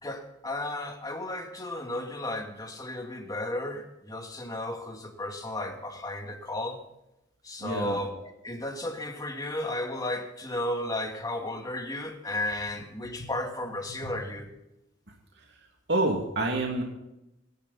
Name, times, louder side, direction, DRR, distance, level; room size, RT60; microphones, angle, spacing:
voice 1, 0.0-6.8 7.4-14.5, left 1 dB, 20° left, 3 dB, 2.7 m, -34 dB
voice 2, 7.6-8.0 13.2-13.3 14.0-14.1 15.9-16.8, right 2 dB, 60° right, 0 dB, 2.7 m, -27 dB
25.0 x 12.0 x 4.3 m, 0.88 s
head